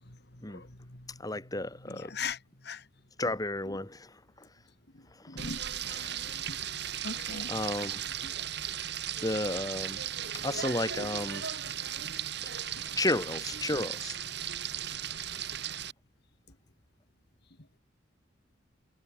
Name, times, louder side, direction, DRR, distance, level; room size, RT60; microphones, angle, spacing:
voice 1, 0.5-1.2 1.9-2.4 2.6-2.8 5.3-5.6 6.5-6.6 7.0-7.5 8.2-8.3, left 5 dB, 60° left, 3.0 m, -39 dB
voice 2, 1.2-2.1 3.2-4.5 5.1-5.4 5.8-6.2 7.3-8.0 9.2-10.0 10.3-11.5 12.4-12.5 13.0-14.2, left 2 dB, 20° left, 3.4 m, -33 dB
Frying (food), 5.4-15.9, right 9 dB, 60° right, 4.1 m, -36 dB
head